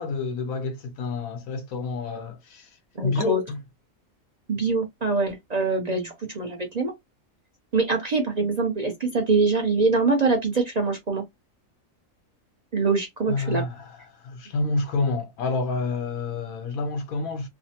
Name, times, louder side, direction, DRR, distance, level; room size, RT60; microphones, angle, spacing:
voice 1, 0.0-2.7 3.0-3.6 13.3-17.5, left 3 dB, 85° left, 1.2 m, -28 dB
voice 2, 3.0-3.4 4.5-6.9 7.7-11.2 12.7-13.6, right 3 dB, 45° right, 0.5 m, -24 dB
3.2 x 2.0 x 2.7 m
omnidirectional pair, 1.4 m